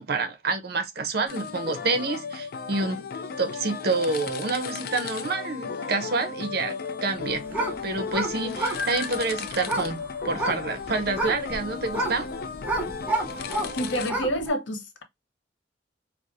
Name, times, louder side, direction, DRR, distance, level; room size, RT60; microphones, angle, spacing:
voice 1, 0.0-3.0 3.4-6.8 7.0-7.4 7.8-10.0 10.2-12.3, right 3 dB, 60° right, 0.7 m, -28 dB
sound 1, 1.3-14.1, left 5 dB, 55° left, 0.4 m, -35 dB
sound 2, 7.1-14.5, right 1 dB, 10° right, 0.7 m, -31 dB
voice 2, 13.8-15.0, equal, 85° left, 0.8 m, -28 dB
4.6 x 2.1 x 2.4 m
head